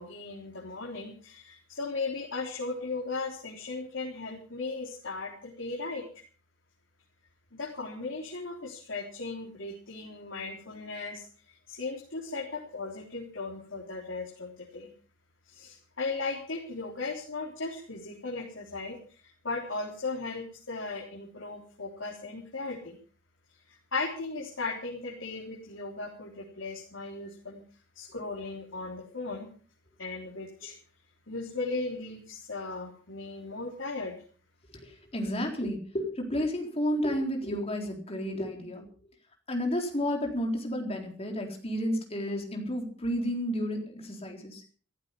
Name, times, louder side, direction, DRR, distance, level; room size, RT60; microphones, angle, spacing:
voice 1, 0.0-6.1 7.5-11.3 11.7-14.9 15.5-19.2 19.4-23.0 23.9-27.6 28.0-29.5 30.0-30.7 31.3-34.1, left 3 dB, 75° left, -2 dB, 3.8 m, -37 dB
voice 2, 34.8-38.9 39.5-44.6, equal, 30° left, 2 dB, 4.2 m, -31 dB
15.0 x 15.0 x 5.5 m, 0.42 s
head